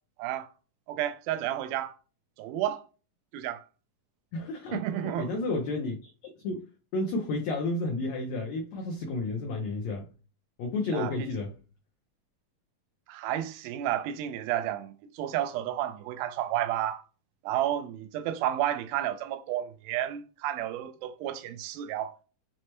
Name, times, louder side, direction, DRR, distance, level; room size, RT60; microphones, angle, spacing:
voice 1, 0.9-2.0 2.4-2.8 3.3-3.6 4.7-5.3 10.9-11.3 13.1-17.0 17.4-22.1, right 12 dB, 90° right, 2.4 m, -31 dB
voice 2, 4.3-4.8 5.2-6.1 6.4-10.1 10.6-11.5, left 2 dB, 85° left, 1.5 m, -31 dB
6.3 x 2.1 x 2.9 m
omnidirectional pair, 4.1 m